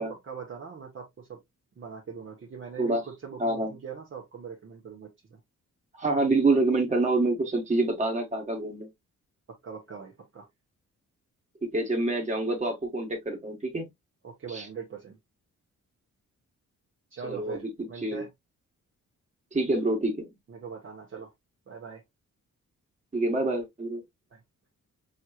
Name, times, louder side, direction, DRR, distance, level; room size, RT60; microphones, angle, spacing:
voice 1, 0.0-1.4 1.8-5.4 9.6-10.5 14.2-15.2 17.1-18.3 20.5-21.3 21.7-22.0 24.3-24.4, right 6 dB, 40° right, 1.1 m, -41 dB
voice 2, 3.4-3.7 5.9-8.9 11.7-13.9 14.5-14.7 17.2-17.7 18.0-18.2 19.5-20.3 23.1-24.0, right 2 dB, 20° right, 1.6 m, -27 dB
6.3 x 3.1 x 2.3 m
wide cardioid pair, 180°, 32 cm